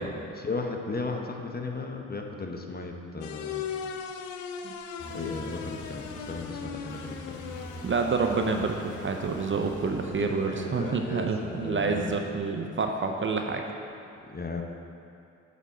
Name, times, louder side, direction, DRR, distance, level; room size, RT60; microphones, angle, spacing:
voice 1, 0.0-3.6 5.1-7.4 10.1-12.2 14.3-14.6, left 3 dB, 25° left, 3 dB, 0.8 m, -36 dB
sound 1, 3.2-12.4, left 6 dB, 90° left, 0.5 m, -40 dB
sound 2, 5.0-10.5, equal, 50° left, 1.6 m, -44 dB
voice 2, 7.8-13.6, right 4 dB, 30° right, 3 dB, 0.7 m, -28 dB
8.1 x 3.7 x 5.7 m, 2.6 s
hypercardioid pair, 50°, 37 cm